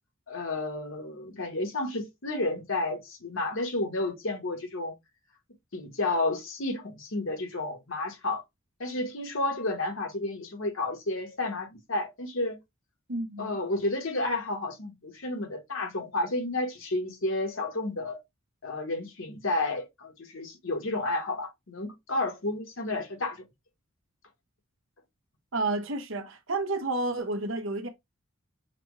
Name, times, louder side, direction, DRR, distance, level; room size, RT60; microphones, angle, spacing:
voice 1, 0.3-4.9 5.7-8.4 8.8-12.6 13.4-18.2 18.6-23.4, left 2 dB, 70° left, 1.3 m, -31 dB
voice 2, 13.1-13.5 25.5-27.9, right 2 dB, 65° right, 0.9 m, -30 dB
5.8 x 2.4 x 3.1 m
head